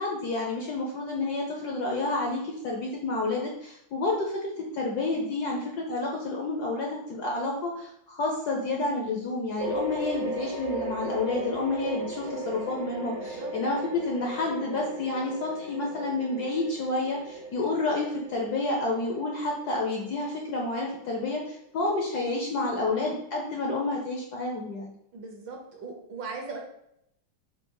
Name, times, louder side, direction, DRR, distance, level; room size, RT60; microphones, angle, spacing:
voice 1, 0.0-24.9, left 2 dB, 70° left, -1 dB, 1.0 m, -30 dB
sound 1, 9.6-22.4, right 1 dB, 85° right, 1.7 m, -37 dB
voice 2, 25.1-26.6, right 4 dB, 65° right, 2 dB, 1.4 m, -39 dB
4.6 x 2.3 x 4.6 m, 0.76 s
omnidirectional pair, 2.3 m